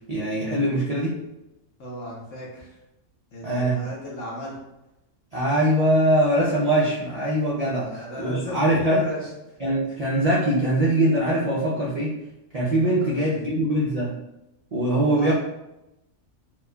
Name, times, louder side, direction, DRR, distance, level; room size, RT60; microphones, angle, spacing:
voice 1, 0.1-1.2 3.4-3.8 5.3-9.1 9.6-12.2 12.5-14.1 14.7-15.3, right 1 dB, 85° right, -6 dB, 0.3 m, -22 dB
voice 2, 1.8-2.8 3.3-4.6 7.7-9.2 9.9-10.0 12.8-13.4 15.2-15.3, equal, 65° left, -3 dB, 1.2 m, -36 dB
4.5 x 2.3 x 2.2 m, 0.90 s
omnidirectional pair, 1.5 m